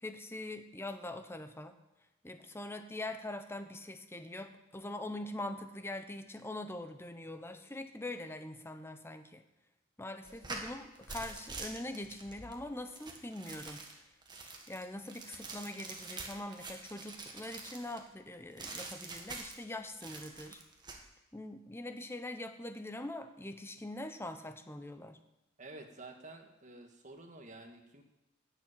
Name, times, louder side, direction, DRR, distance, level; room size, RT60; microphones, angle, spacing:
voice 1, 0.0-1.8 2.2-9.4 10.0-13.9 14.7-20.6 21.3-25.2, left 1 dB, 10° left, 8 dB, 0.8 m, -43 dB
sound 1, 10.2-18.0 18.6-19.7 20.0-21.0, right 3 dB, 20° right, 1.6 m, -46 dB
voice 2, 25.6-28.0, right 2 dB, 40° right, 3 dB, 1.7 m, -50 dB
12.0 x 7.0 x 8.9 m, 0.99 s
head